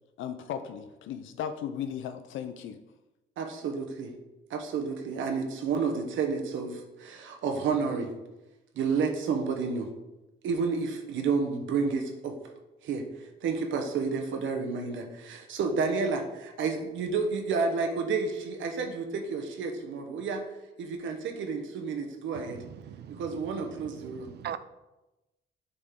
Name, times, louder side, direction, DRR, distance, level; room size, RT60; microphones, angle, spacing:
voice 1, 0.2-2.8, left 8 dB, 75° left, 9 dB, 0.5 m, -36 dB
voice 2, 3.4-4.1 4.5-8.1 8.8-9.9 10.4-12.4 12.8-20.4 20.8-22.6 23.2-24.3, right 5 dB, 75° right, 4 dB, 0.9 m, -30 dB
voice 3, 22.9-23.2 24.1-24.6, right 10 dB, 55° right, 14 dB, 0.4 m, -38 dB
6.9 x 4.1 x 3.7 m, 1.0 s
cardioid pair, 90°, 20 cm